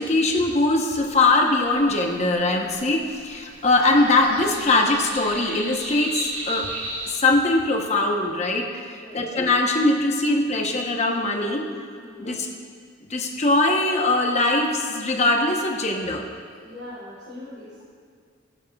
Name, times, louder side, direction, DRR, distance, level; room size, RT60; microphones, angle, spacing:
voice 1, 0.0-6.7 7.1-11.6 12.2-12.5 13.1-16.2, left 2 dB, 35° left, 2 dB, 0.9 m, -21 dB
sound 1, 0.9-7.1, right 2 dB, 40° right, 2.4 m, -36 dB
voice 2, 12.0-12.3 16.6-17.9, left 1 dB, 55° right, -11 dB, 2.7 m, -41 dB
15.5 x 9.1 x 2.3 m, 2.1 s
head